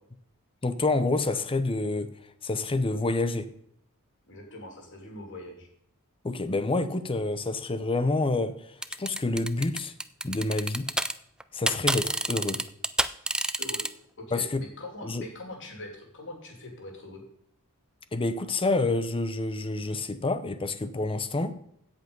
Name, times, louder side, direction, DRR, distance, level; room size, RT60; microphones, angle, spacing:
voice 1, 0.6-2.1 2.4-3.5 6.2-8.5 9.0-9.9 10.2-10.9 11.5-12.6 14.3-14.6 15.0-15.2 18.1-21.5, left 2 dB, 25° left, 11 dB, 0.7 m, -28 dB
voice 2, 4.3-5.7 13.6-13.9 14.2-17.2, left 1 dB, 55° left, 2 dB, 2.8 m, -42 dB
sound 1, 8.8-11.1 11.4-13.9, right 1 dB, 5° right, 0.3 m, -27 dB
16.0 x 5.4 x 5.3 m, 0.71 s
head